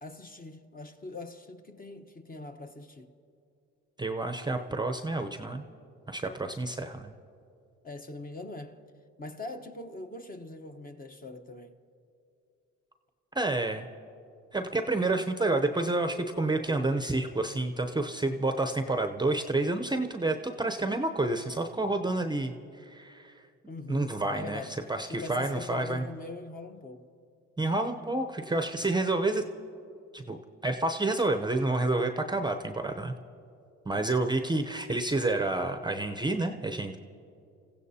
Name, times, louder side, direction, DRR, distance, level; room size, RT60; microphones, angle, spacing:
voice 1, 0.0-3.1 7.8-8.9 9.2-11.8 23.7-24.7 25.1-27.1 33.9-34.1, left 2 dB, 30° left, 1.0 m, -42 dB
voice 2, 4.0-5.6 6.1-7.1 13.3-13.9 14.5-23.4 23.9-26.1 27.6-29.4 30.1-33.1 33.9-37.0, right 2 dB, 15° right, 0.7 m, -29 dB
30.0 x 15.5 x 2.8 m
cardioid pair, 90°, 30 cm